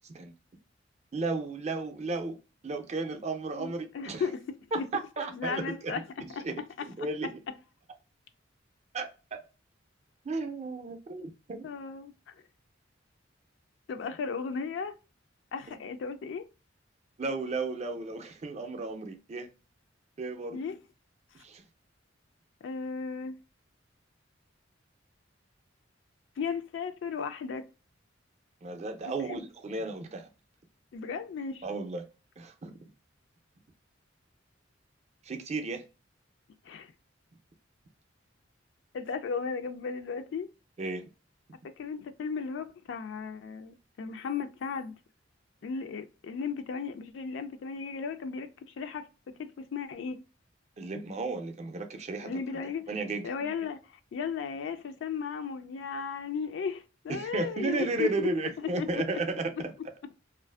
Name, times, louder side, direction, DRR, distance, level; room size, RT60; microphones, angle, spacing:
voice 1, 1.1-2.4 2.6-4.2 4.7-7.3 8.9-9.4 10.2-11.7 15.7-15.8 17.2-19.5 20.2-20.6 21.4-21.6 28.6-30.3 31.6-32.0 32.4-32.7 35.2-35.8 40.8-41.0 50.8-52.3 52.9-53.3 57.1-59.7, right 3 dB, 35° right, 0.4 m, -34 dB
voice 2, 3.6-4.9 5.3-7.1 11.6-12.3 13.9-14.9 15.5-16.4 20.5-20.8 22.6-23.4 26.4-27.7 29.0-29.4 30.9-31.7 36.7-36.9 38.9-40.5 41.6-44.9 45.6-50.2 52.2-52.9 53.2-58.3 58.6-59.2, left 5 dB, 65° left, 0.3 m, -36 dB
2.5 x 2.4 x 2.3 m
head